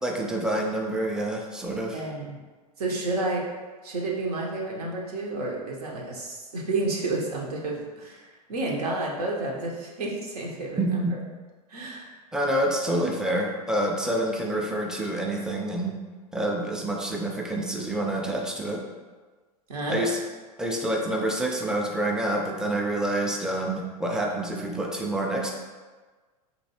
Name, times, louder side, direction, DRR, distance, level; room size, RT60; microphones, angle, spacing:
voice 1, 0.0-2.0 10.8-11.1 12.3-16.0 16.3-18.8 19.9-20.2 20.6-25.5, right 1 dB, 5° right, 0 dB, 0.5 m, -27 dB
voice 2, 1.9-2.4 2.8-3.4 3.8-11.0 11.7-12.1 19.7-20.0, right 2 dB, 70° right, -2 dB, 0.9 m, -30 dB
4.1 x 3.0 x 2.8 m, 1.4 s
figure-of-eight pair, 90°, 20 cm